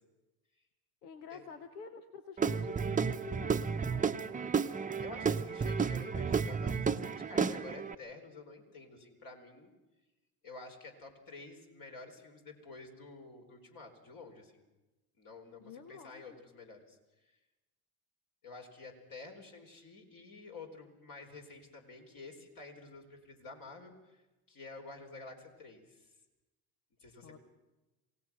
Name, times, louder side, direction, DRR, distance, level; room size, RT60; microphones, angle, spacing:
voice 1, 1.0-4.3 15.6-16.4 27.2-27.4, left 5 dB, 85° left, 9 dB, 1.3 m, -48 dB
Guitar / Drum, 2.4-7.9, right 6 dB, 20° right, 0.9 m, -32 dB
voice 2, 5.0-9.7 10.4-14.6 15.2-17.0 17.2-17.4 18.4-24.2 24.5-26.1 27.0-27.4, left 3 dB, 50° left, 3 dB, 4.6 m, -50 dB
27.5 x 17.5 x 6.1 m, 1.1 s
hypercardioid pair, 70°, 45 cm